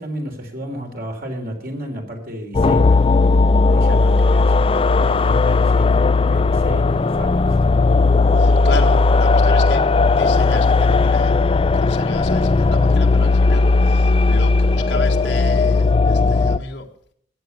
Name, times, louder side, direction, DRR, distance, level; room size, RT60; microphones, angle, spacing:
voice 1, 0.0-3.0 3.7-7.6, equal, 55° right, 4 dB, 3.4 m, -32 dB
sound 1, 2.5-16.6, left 3 dB, 30° left, 0.5 m, -16 dB
voice 2, 8.4-16.9, left 3 dB, 85° left, 2 dB, 1.5 m, -32 dB
14.5 x 9.6 x 6.9 m, 0.62 s
head